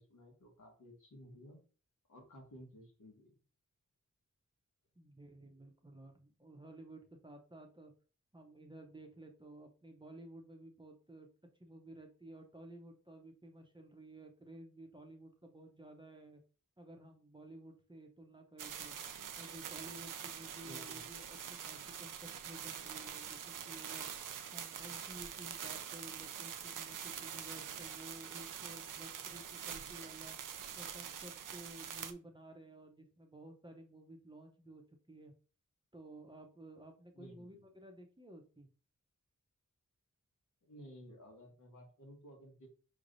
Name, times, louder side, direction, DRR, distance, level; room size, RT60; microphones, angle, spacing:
voice 1, 0.0-1.6 2.1-3.4 20.7-21.0 37.1-37.6 40.6-42.7, equal, 75° left, 0 dB, 1.5 m, -55 dB
voice 2, 5.0-7.9 8.3-11.3 11.6-16.4 16.8-18.9 19.4-24.1 24.5-30.4 30.8-34.8 35.1-35.3 35.9-38.7, right 1 dB, 15° right, 3 dB, 0.7 m, -54 dB
sound 1, 18.6-32.1, right 8 dB, 90° right, 0.5 m, -45 dB
5.1 x 3.2 x 2.6 m, 0.38 s
wide cardioid pair, 95°, 31 cm